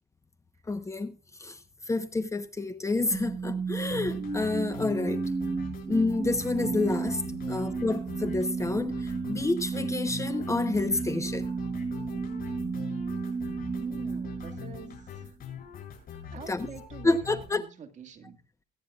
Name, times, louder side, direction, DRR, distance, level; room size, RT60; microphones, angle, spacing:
voice 1, 0.7-1.1 1.4-1.6 1.9-5.2 5.9-7.2 7.5-11.5 16.5-16.7 17.0-17.6, left 3 dB, 15° left, 1.0 m, -29 dB
sound 1, 3.1-15.3, right 4 dB, 25° right, 1.0 m, -33 dB
sound 2, 3.9-17.4, left 8 dB, 60° left, 7.3 m, -43 dB
voice 2, 13.8-15.4 16.3-18.4, right 7 dB, 45° right, 2.0 m, -46 dB
23.5 x 9.6 x 2.4 m
cardioid pair, 110°, 17 cm